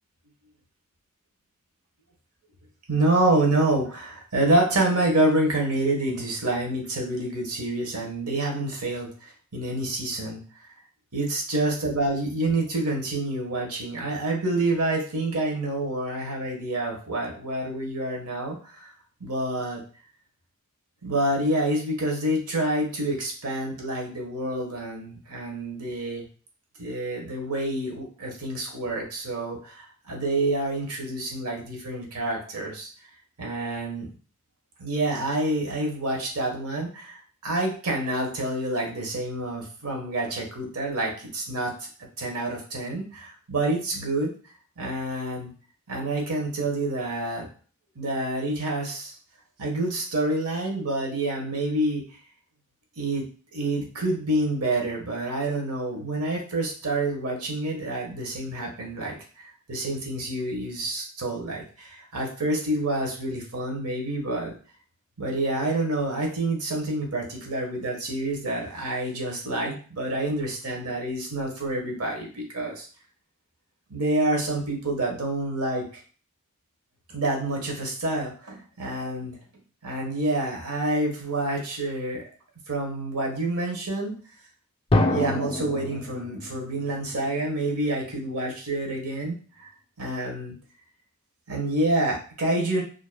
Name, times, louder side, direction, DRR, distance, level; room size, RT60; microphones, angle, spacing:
voice 1, 2.9-10.4 11.1-18.9 19.2-19.8 21.0-26.3 26.8-32.9 33.4-34.1 34.8-41.9 42.2-44.3 44.8-45.5 45.9-47.5 47.9-49.1 49.6-52.0 53.0-53.2 53.5-64.5 65.2-72.9 73.9-76.0 77.1-79.4 79.8-82.2 82.7-84.1 85.1-89.4 90.0-90.5 91.5-92.8, right 1 dB, 90° right, 0 dB, 1.3 m, -27 dB
Drum, 84.9-87.6, left 1 dB, 25° left, 0.5 m, -26 dB
5.1 x 2.9 x 2.2 m, 0.40 s
head